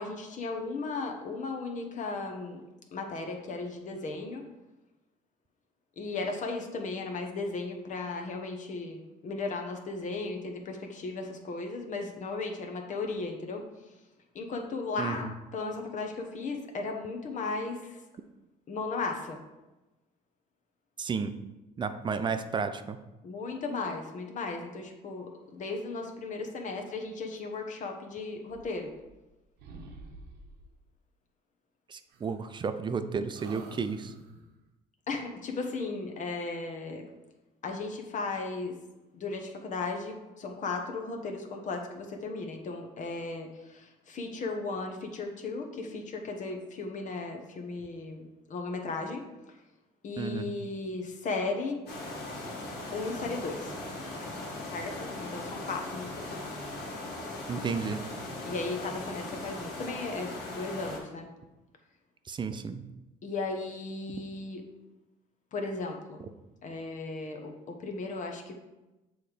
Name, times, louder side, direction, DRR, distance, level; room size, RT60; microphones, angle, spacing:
voice 1, 0.0-2.6 2.9-4.4 6.0-13.6 14.3-18.0 18.7-19.4 23.2-28.9 35.1-37.0 37.6-38.7 39.1-49.2 50.0-51.8 52.9-53.7 54.7-56.4 58.5-61.3 63.2-64.6 65.5-66.2 66.6-68.5, left 3 dB, 50° left, 3 dB, 0.9 m, -36 dB
voice 2, 15.0-15.3 21.0-21.3 21.8-23.0 31.9-34.1 50.2-50.5 57.5-58.0 62.3-62.8, right 5 dB, 30° right, 10 dB, 0.5 m, -32 dB
sound 1, 28.4-29.3 29.6-30.8 32.1-32.9 33.3-34.6, right 3 dB, 80° right, 1.0 m, -50 dB
sound 2, 51.9-61.0, left 2 dB, 75° left, 1.7 m, -39 dB
6.9 x 3.2 x 5.0 m, 1.0 s
cardioid pair, 110°, 17 cm